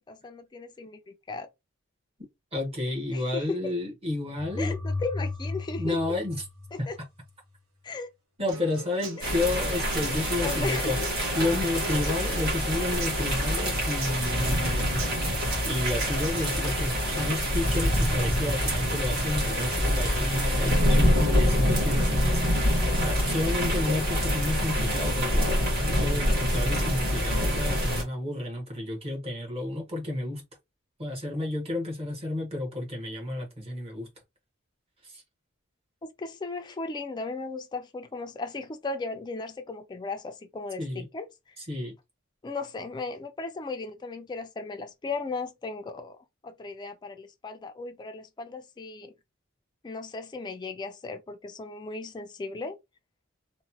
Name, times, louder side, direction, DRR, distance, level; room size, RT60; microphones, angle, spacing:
voice 1, 0.1-1.5 3.1-3.6 4.6-6.0 6.7-6.9 7.8-8.1 9.2-9.3 10.1-10.9 36.0-41.3 42.4-46.2 46.4-49.1 49.8-52.8, left 3 dB, 20° left, 0.3 m, -36 dB
voice 2, 2.5-4.8 5.7-6.4 6.8-6.9 8.4-11.0 11.3-14.9 15.6-30.4 31.0-34.1 35.0-35.2 40.8-41.1 41.6-42.0, left 1 dB, 30° right, 1.1 m, -31 dB
sound 1, 4.4-7.3, left 3 dB, 85° right, 1.3 m, -34 dB
Human voice / Acoustic guitar, 8.5-16.5, right 4 dB, 65° right, 0.8 m, -42 dB
sound 2, 9.2-28.0, equal, 50° right, 1.3 m, -26 dB
3.0 x 2.1 x 2.7 m
head